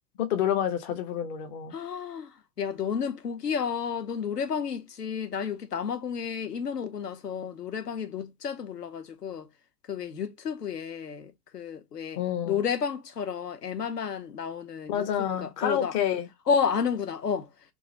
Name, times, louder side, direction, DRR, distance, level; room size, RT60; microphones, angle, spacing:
voice 1, 0.2-1.7 12.2-12.6 14.9-16.3, left 10 dB, 30° left, 0.5 m, -28 dB
voice 2, 1.7-9.5 9.9-12.2 12.5-15.9 16.5-17.5, left 6 dB, 80° left, 0.7 m, -31 dB
3.0 x 2.4 x 3.8 m
figure-of-eight pair, 90°, 47 cm